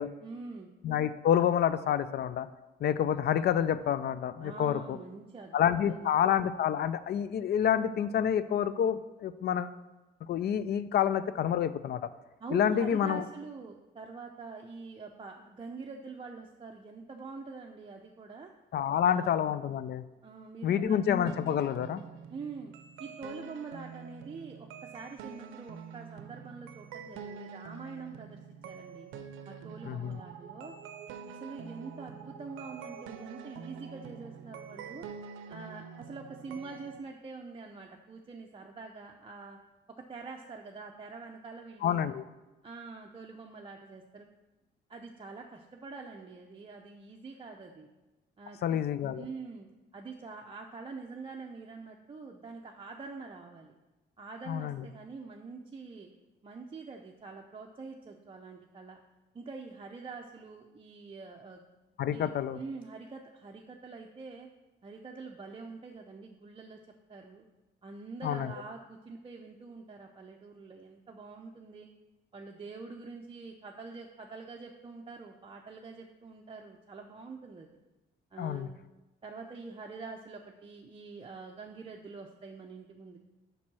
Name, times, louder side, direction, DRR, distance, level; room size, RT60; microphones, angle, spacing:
voice 1, 0.2-0.7 4.4-5.5 5.8-6.2 12.4-18.5 19.1-19.5 20.2-21.0 22.3-22.7 23.0-29.1 29.5-30.7 31.3-35.1 35.5-39.6 40.0-42.1 42.6-44.3 44.9-47.9 48.4-48.8 49.1-49.7 49.9-53.7 54.2-56.1 56.4-59.0 59.3-61.6 62.1-64.5 64.8-66.8 67.1-67.4 67.8-71.9 72.3-77.8 78.3-78.8 79.2-83.2, right 4 dB, 25° right, 0 dB, 0.5 m, -45 dB
voice 2, 0.8-2.5 2.8-5.0 5.5-9.7 10.2-12.1 12.5-13.2 18.7-20.0 20.6-22.0 29.9-30.2 41.8-42.2 48.6-49.3 54.5-54.9 62.0-62.6 68.2-68.5 78.4-78.7, left 9 dB, 55° left, 15 dB, 0.4 m, -28 dB
sound 1, 21.3-37.0, right 6 dB, 90° right, 0.6 m, -46 dB
5.3 x 4.3 x 6.1 m, 1.1 s
cardioid pair, 90°, 20 cm